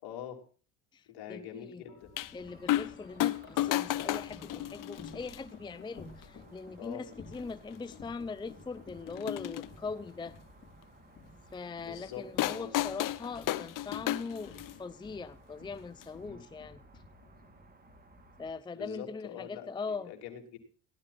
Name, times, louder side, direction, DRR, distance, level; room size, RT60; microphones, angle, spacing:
voice 1, 0.0-0.4 1.1-2.1 6.8-7.0 11.8-12.7 16.2-16.4 18.7-19.7 20.1-20.6, left 9 dB, 65° left, 3.3 m, -44 dB
voice 2, 0.9-1.8 2.3-10.3 11.5-16.8 18.4-20.1, left 4 dB, 10° left, 0.6 m, -41 dB
Wind chime, 1.9-18.1, left 4 dB, 30° left, 5.2 m, -54 dB
sound 1, 2.2-2.3 2.7-3.0 3.2-5.4 6.2-6.3 7.3-7.4 7.8-7.9 9.1-9.7 12.4-14.8 16.0-16.1, left 14 dB, 50° left, 0.8 m, -32 dB
sound 2, 2.4-18.5, right 2 dB, 20° right, 2.7 m, -59 dB
16.0 x 11.5 x 4.1 m
supercardioid pair, 100°, 40 cm